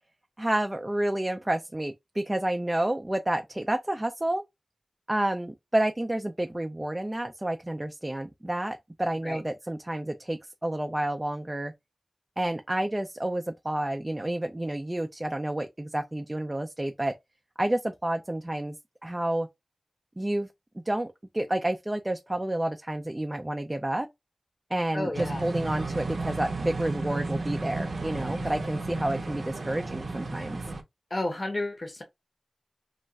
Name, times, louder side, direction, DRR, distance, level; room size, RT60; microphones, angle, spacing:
voice 1, 0.4-4.4 5.1-11.7 12.4-17.1 17.6-18.8 19.0-19.5 20.2-20.5 20.9-24.1 24.7-30.6, right 1 dB, 20° right, 0.3 m, -30 dB
voice 2, 24.9-25.5 31.1-32.0, left 1 dB, 40° left, 0.7 m, -31 dB
sound 1, 25.1-30.8, right 3 dB, 75° right, 0.6 m, -33 dB
2.4 x 2.2 x 3.9 m
wide cardioid pair, 80°, 0 cm